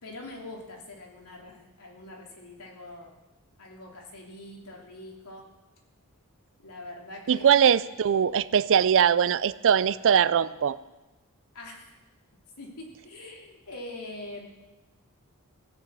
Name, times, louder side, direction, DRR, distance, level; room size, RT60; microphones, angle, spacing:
voice 1, 0.0-3.1 3.6-5.4 6.6-7.6 11.5-11.9 12.6-14.5, left 2 dB, 85° left, -1 dB, 3.1 m, -43 dB
voice 2, 7.3-10.8, right 8 dB, 60° right, 18 dB, 0.4 m, -21 dB
16.5 x 7.1 x 8.3 m, 1.1 s
head